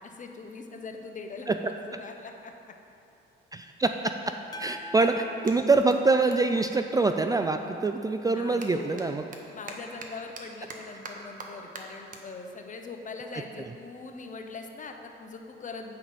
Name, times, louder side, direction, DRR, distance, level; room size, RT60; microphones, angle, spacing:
voice 1, 0.0-1.5 1.9-2.8 8.3-9.1 9.5-15.9, left 4 dB, 40° left, 4 dB, 0.9 m, -41 dB
voice 2, 3.5-4.0 4.6-9.2, right 3 dB, 20° right, 6 dB, 0.3 m, -25 dB
sound 1, 4.5-6.9, left 1 dB, 20° left, 0.9 m, -45 dB
Clapping, 4.9-7.7 8.0-14.6, right 3 dB, 40° right, 1.1 m, -48 dB
9.4 x 4.0 x 7.2 m, 2.7 s
cardioid pair, 90°, 20 cm